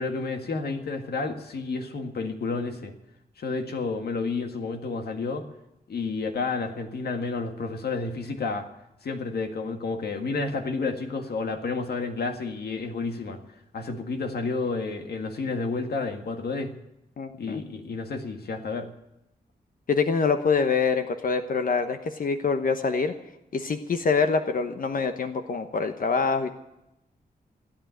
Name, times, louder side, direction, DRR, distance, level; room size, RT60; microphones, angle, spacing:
voice 1, 0.0-2.9 3.4-5.5 5.9-8.7 9.0-13.4 13.7-16.7 17.4-18.9, left 4 dB, 75° left, 6 dB, 1.8 m, -30 dB
voice 2, 17.2-17.6 19.9-23.1 23.5-26.5, left 5 dB, 60° left, 8 dB, 1.0 m, -25 dB
16.5 x 8.9 x 9.2 m, 0.88 s
cardioid pair, 85°, 16 cm